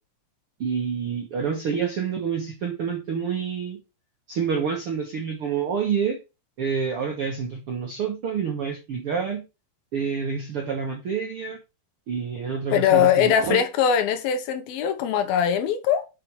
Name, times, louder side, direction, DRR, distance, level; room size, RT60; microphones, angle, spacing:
voice 1, 0.6-3.8 4.3-6.2 6.6-9.4 9.9-11.6 12.1-13.6, right 6 dB, 65° right, 1.4 m, -28 dB
voice 2, 12.7-16.1, left 9 dB, 75° left, 2.8 m, -21 dB
8.5 x 6.8 x 3.1 m
omnidirectional pair, 4.5 m